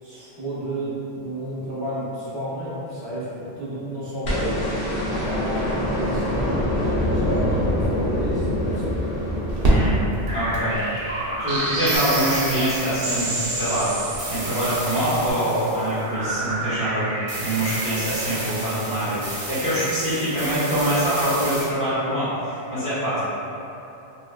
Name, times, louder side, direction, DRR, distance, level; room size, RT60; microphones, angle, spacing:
voice 1, 0.0-6.6 7.0-9.1, right 1 dB, 30° right, -9 dB, 0.6 m, -31 dB
sound 1, 4.2-10.4 11.9-12.0, left 1 dB, 70° left, 1.0 m, -25 dB
sound 2, 7.4-15.3, right 1 dB, 60° right, 0.8 m, -29 dB
voice 2, 9.6-10.0 10.3-10.8 11.4-13.9 14.3-23.2, right 1 dB, 40° left, -16 dB, 1.7 m, -24 dB
sound 3, 10.3-21.7, right 2 dB, 90° right, 0.9 m, -29 dB
3.0 x 2.6 x 2.2 m, 2.9 s
omnidirectional pair, 1.1 m